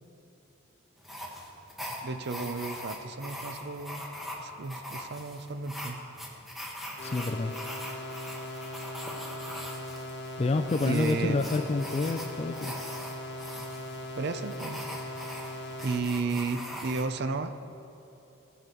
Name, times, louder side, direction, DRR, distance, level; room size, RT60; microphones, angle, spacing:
sound 1, 1.0-17.0, equal, ahead, 1.1 m, -41 dB
voice 1, 2.0-4.1 4.4-6.0 10.8-11.4 14.2-14.8 15.8-17.6, right 4 dB, 50° right, 9 dB, 0.6 m, -33 dB
sound 2, 7.0-16.0, left 1 dB, 55° left, 1.2 m, -40 dB
voice 2, 7.0-7.6 10.4-12.7, left 3 dB, 30° left, 7 dB, 0.3 m, -28 dB
17.0 x 6.1 x 5.3 m, 3.0 s
head